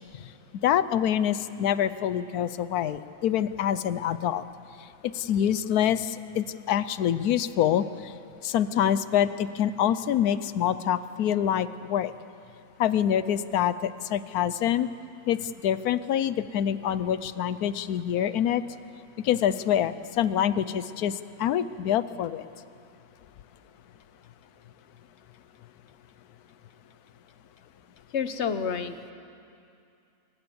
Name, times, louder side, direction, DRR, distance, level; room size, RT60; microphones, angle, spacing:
voice 1, 0.6-4.4 5.2-6.1 6.3-7.8 8.4-12.1 12.8-14.9 15.3-15.4 15.6-18.6 19.3-21.1 21.4-22.4, left 10 dB, 90° left, 14 dB, 1.2 m, -25 dB
voice 2, 28.1-29.1, left 6 dB, 50° left, 10 dB, 1.2 m, -30 dB
23.5 x 20.5 x 7.0 m, 2.5 s
omnidirectional pair, 1.6 m